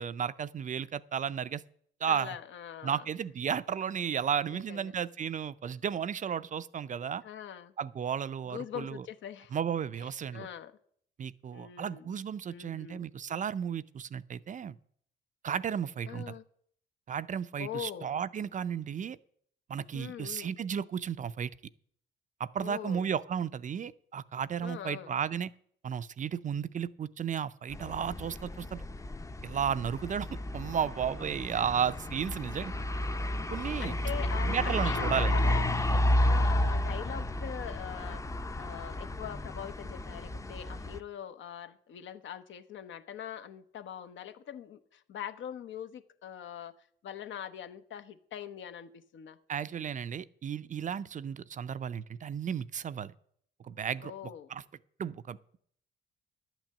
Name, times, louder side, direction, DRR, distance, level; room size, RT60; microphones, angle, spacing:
voice 1, 0.0-1.6 2.0-2.4 2.8-7.2 7.8-9.0 9.5-10.5 11.2-14.8 15.4-16.3 17.1-19.2 19.7-21.5 22.4-25.5 25.8-28.8 29.4-30.3 30.5-32.7 33.5-33.9 34.5-35.4 49.5-53.1 53.6-54.1 54.5-54.6 55.0-55.4, right 8 dB, 40° right, 0.5 m, -33 dB
voice 2, 2.1-3.0 4.5-4.9 7.2-7.7 8.4-9.5 10.0-10.7 11.5-12.1 12.5-13.1 16.1-16.4 17.6-18.1 19.9-20.5 22.6-23.1 24.6-25.1 31.5-31.7 33.8-49.4 54.0-54.5, left 9 dB, 70° left, 1.0 m, -42 dB
sound 1, 27.7-41.0, left 1 dB, 15° left, 0.6 m, -31 dB
11.5 x 6.1 x 8.6 m
cardioid pair, 90°, 20 cm